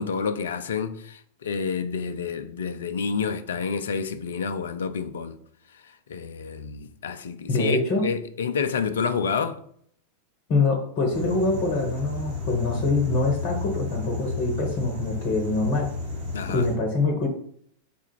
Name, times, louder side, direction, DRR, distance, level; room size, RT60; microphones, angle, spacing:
voice 1, 0.0-5.4 6.1-9.6 16.3-16.7, left 6 dB, 65° left, 0.4 m, -29 dB
voice 2, 7.5-8.0 10.5-15.9 16.5-17.3, left 3 dB, 40° left, 0.9 m, -24 dB
sound 1, 11.1-16.8, left 4 dB, 55° right, 1.5 m, -33 dB
4.2 x 2.4 x 4.5 m
figure-of-eight pair, 90°, 0 cm